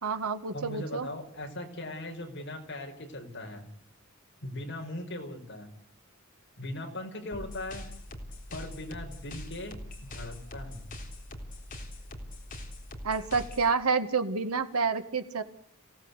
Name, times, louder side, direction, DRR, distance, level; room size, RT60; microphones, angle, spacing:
voice 1, 0.0-1.1 13.0-15.4, right 5 dB, 90° right, 8 dB, 1.8 m, -29 dB
voice 2, 0.5-3.7 4.4-5.7 6.6-7.8 8.5-10.9, left 1 dB, 55° left, 3 dB, 4.8 m, -39 dB
sound 1, 7.3-13.7, left 1 dB, 35° left, 3.7 m, -43 dB
27.0 x 17.0 x 8.2 m, 0.69 s
head